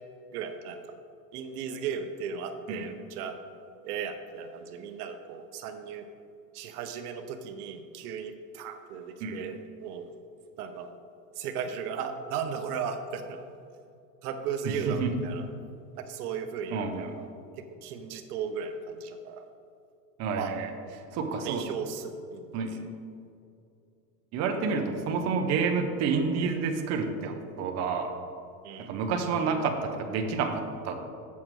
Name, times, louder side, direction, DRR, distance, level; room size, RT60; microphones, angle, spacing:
voice 1, 0.3-0.8 1.3-3.4 3.8-6.1 6.5-10.1 10.6-10.9 11.3-13.4 14.2-15.5 15.9-17.3 17.6-19.5 20.4-20.6 21.4-22.6 28.6-28.9, right 6 dB, 70° right, 7 dB, 0.9 m, -36 dB
voice 2, 14.6-15.1 16.7-17.1 20.2-20.7 21.1-21.6 22.5-22.8 24.3-28.1 28.8-31.0, right 5 dB, 35° right, 4 dB, 0.8 m, -29 dB
7.3 x 7.3 x 4.6 m, 2.5 s
supercardioid pair, 140°, 47 cm